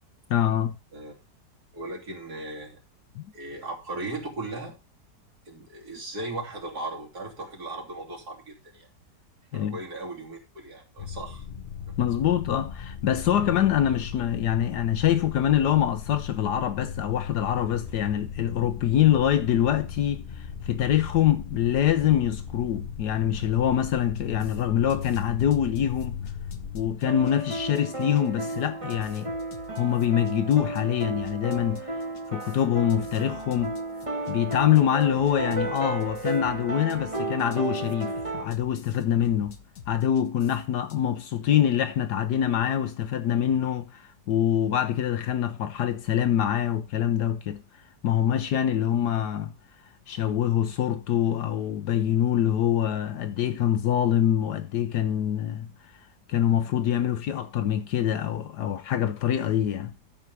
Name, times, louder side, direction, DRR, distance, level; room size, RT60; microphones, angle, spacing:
voice 1, 0.3-0.8 3.2-3.3 9.5-9.8 12.0-26.2 26.7-29.3 29.7-32.0 32.3-33.8 34.3-39.6 39.9-47.6 48.0-49.5 50.1-55.7 56.3-59.9, left 10 dB, 75° left, 1.3 m, -25 dB
voice 2, 1.7-2.8 3.3-4.8 5.5-8.9 9.5-11.4, right 2 dB, 60° right, 3.7 m, -37 dB
sound 1, 11.0-26.9, left 7 dB, 40° left, 1.0 m, -37 dB
gitan-drums, 24.1-41.0, left 6 dB, 55° left, 1.5 m, -48 dB
sound 2, 27.0-38.4, right 2 dB, 20° right, 1.5 m, -33 dB
13.0 x 4.8 x 5.5 m
omnidirectional pair, 1.8 m